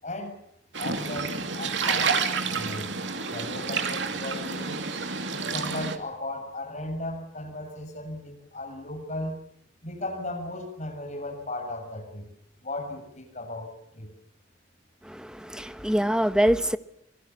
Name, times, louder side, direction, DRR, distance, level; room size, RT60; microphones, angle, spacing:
voice 1, 0.0-0.4 0.8-2.9 3.3-4.8 5.3-9.4 9.8-12.3 12.6-14.1, left 1 dB, 40° left, 7.1 m, -36 dB
sound 1, 0.7-6.0, right 5 dB, 80° right, 2.5 m, -29 dB
voice 2, 15.1-16.8, equal, 5° right, 1.0 m, -24 dB
27.0 x 21.5 x 7.2 m
head